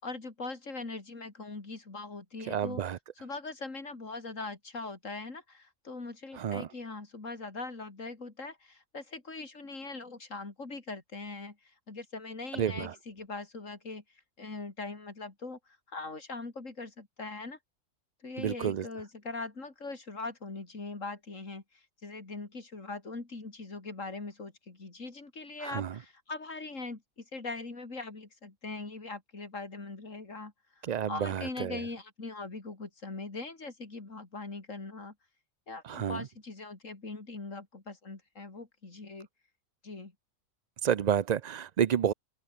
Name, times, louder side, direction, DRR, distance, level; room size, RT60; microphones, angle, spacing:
voice 1, 0.0-2.8 3.2-11.6 11.9-14.0 14.4-15.6 15.9-17.6 18.2-35.1 35.7-39.3 39.8-40.1, left 3 dB, 65° left, 3.8 m, -41 dB
voice 2, 2.5-3.0 6.3-6.7 12.5-12.9 18.4-18.9 25.6-26.0 30.8-31.8 35.8-36.3 40.8-42.1, right 9 dB, 70° right, 0.4 m, -30 dB
omnidirectional pair, 1.4 m